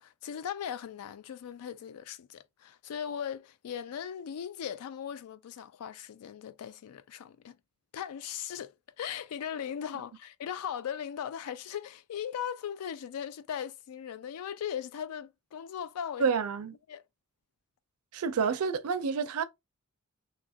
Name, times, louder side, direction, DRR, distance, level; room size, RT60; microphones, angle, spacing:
voice 1, 0.0-7.6 7.9-16.3 16.9-17.0, left 8 dB, 90° left, 0.3 m, -38 dB
voice 2, 16.2-16.7 18.1-19.4, right 6 dB, 85° right, 0.4 m, -29 dB
2.8 x 2.4 x 2.6 m
head